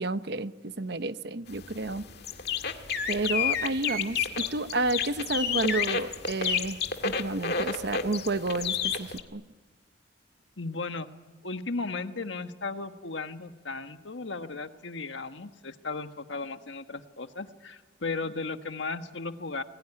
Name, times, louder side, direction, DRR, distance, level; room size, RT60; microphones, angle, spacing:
voice 1, 0.0-2.1 3.1-6.8 7.0-9.4, right 2 dB, 60° right, 12 dB, 0.9 m, -30 dB
sound 1, 1.5-9.2, left 7 dB, 55° left, 2.0 m, -31 dB
voice 2, 10.6-11.1 11.4-19.6, left 3 dB, 75° left, 8 dB, 1.4 m, -35 dB
28.0 x 21.0 x 10.0 m, 1.3 s
head